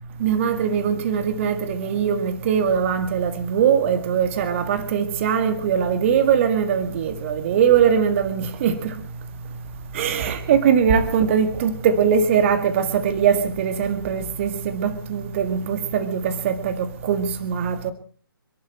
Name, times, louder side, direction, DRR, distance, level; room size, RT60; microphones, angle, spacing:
voice 1, 0.2-8.9 9.9-17.9, right 7 dB, 35° right, 1.9 m, -21 dB
27.5 x 11.5 x 4.5 m
figure-of-eight pair, 145°, 12 cm